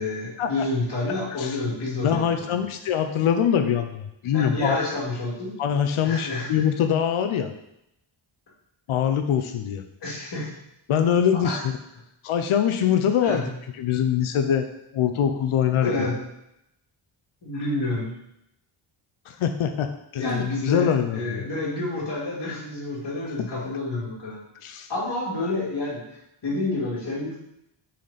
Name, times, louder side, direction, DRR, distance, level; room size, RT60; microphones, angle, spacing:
voice 1, 0.0-2.6 4.3-5.5 6.0-6.5 10.0-10.5 11.3-11.6 13.2-13.5 15.8-16.2 17.4-18.1 20.2-24.4 24.9-26.0 26.4-27.4, left 2 dB, 55° left, -5 dB, 2.5 m, -29 dB
voice 2, 2.0-4.8 5.6-7.5 8.9-9.8 10.9-11.7 12.2-13.5 13.8-14.7 14.9-16.1 19.3-21.5 24.6-24.9, left 8 dB, 85° left, 6 dB, 0.7 m, -23 dB
6.2 x 4.3 x 4.1 m, 0.80 s
wide cardioid pair, 145°, 48 cm